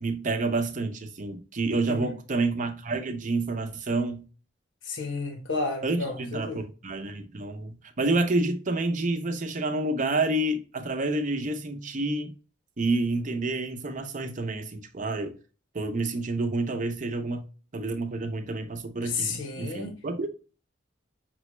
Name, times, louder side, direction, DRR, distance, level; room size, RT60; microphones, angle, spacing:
voice 1, 0.0-4.2 5.8-12.3 12.8-15.3 15.7-17.5 17.7-20.3, right 2 dB, 40° right, 0.6 m, -29 dB
voice 2, 4.8-6.6 19.0-20.0, left 4 dB, 75° left, 0.9 m, -32 dB
6.0 x 2.1 x 3.0 m
head